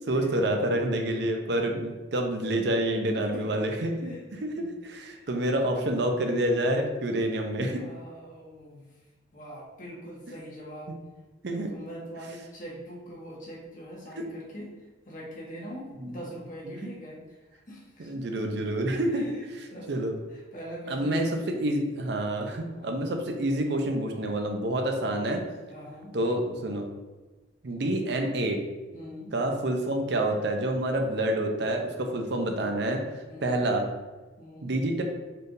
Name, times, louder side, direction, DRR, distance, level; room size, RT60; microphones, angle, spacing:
voice 1, 0.0-7.8 10.9-11.0 11.4-11.7 14.2-14.3 15.6-15.7 16.0-16.2 18.0-20.1 20.9-25.4 26.1-26.9 27.6-28.6 29.3-33.0 33.4-33.9 34.6-35.0, right 1 dB, 60° right, 3 dB, 0.6 m, -28 dB
voice 2, 3.2-3.6 4.0-4.2 4.6-4.7 5.1-5.3 7.7-8.9 9.3-10.9 11.5-14.7 15.1-19.4 19.7-20.0 20.3-21.3 22.4-23.1 25.7-26.1 28.9-29.3 33.3-33.6 34.4-34.7, equal, 45° left, -4 dB, 1.2 m, -43 dB
4.3 x 3.3 x 2.6 m, 1.2 s
head